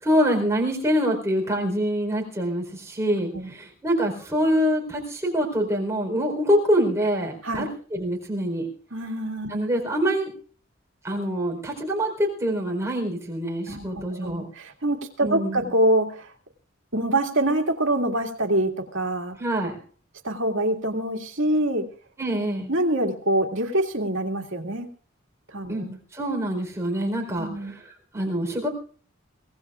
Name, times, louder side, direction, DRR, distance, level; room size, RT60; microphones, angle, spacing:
voice 1, 0.0-8.7 9.5-10.3 11.0-14.5 15.2-15.7 19.4-19.8 22.2-22.7 25.7-25.8 26.1-27.8 28.1-28.7, equal, 15° right, 0 dB, 4.2 m, -25 dB
voice 2, 8.9-9.6 13.7-16.3 16.9-19.4 20.2-21.9 22.7-24.9 25.5-26.0 27.4-27.8, right 1 dB, 70° right, 2 dB, 2.3 m, -25 dB
24.0 x 17.5 x 2.5 m, 0.43 s
head